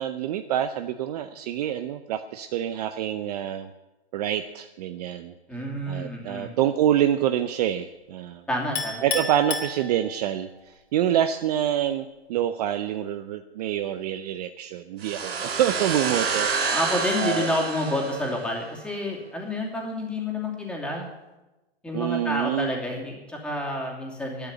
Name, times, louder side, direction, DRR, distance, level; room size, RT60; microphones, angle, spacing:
voice 1, 0.0-3.7 4.1-8.5 9.0-16.8 17.2-17.5 21.9-22.8, right 11 dB, 40° right, 9 dB, 0.7 m, -27 dB
voice 2, 5.5-6.5 8.5-9.0 16.7-21.1 21.8-24.5, left 1 dB, 5° left, -2 dB, 2.7 m, -29 dB
Chink clink, 8.8-10.4, left 4 dB, 90° left, 3.4 m, -31 dB
sound 1, 15.0-18.7, right 5 dB, 70° right, 4.1 m, -28 dB
12.0 x 8.9 x 9.4 m, 1.0 s
hypercardioid pair, 145°, 32 cm